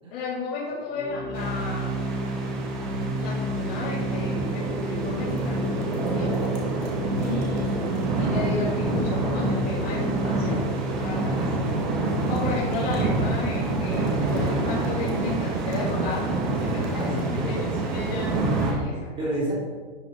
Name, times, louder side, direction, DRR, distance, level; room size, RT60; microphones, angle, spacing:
voice 1, 0.1-1.9 3.2-6.5 7.2-7.9 8.1-10.7 10.9-11.7 12.3-19.1, left 3 dB, 40° left, -9 dB, 3.0 m, -34 dB
Organ, 0.9-11.7, right 1 dB, 20° left, 1.5 m, -30 dB
sound 1, 1.3-18.7, right 2 dB, 45° right, 2.1 m, -27 dB
voice 2, 11.3-12.6 16.9-18.5 19.2-19.5, equal, 15° right, -4 dB, 2.8 m, -34 dB
11.5 x 5.9 x 4.1 m, 1.5 s
hypercardioid pair, 155°, 32 cm